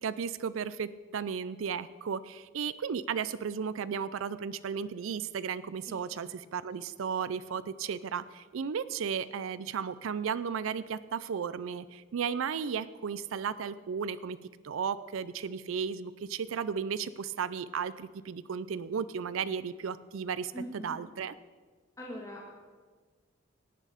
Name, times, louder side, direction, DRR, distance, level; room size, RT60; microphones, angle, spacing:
voice 1, 0.0-14.4 14.6-21.3, right 6 dB, 85° right, 15 dB, 0.4 m, -34 dB
voice 2, 20.5-21.0 22.0-22.5, equal, 15° left, -2 dB, 1.5 m, -42 dB
17.5 x 8.5 x 5.0 m, 1.5 s
head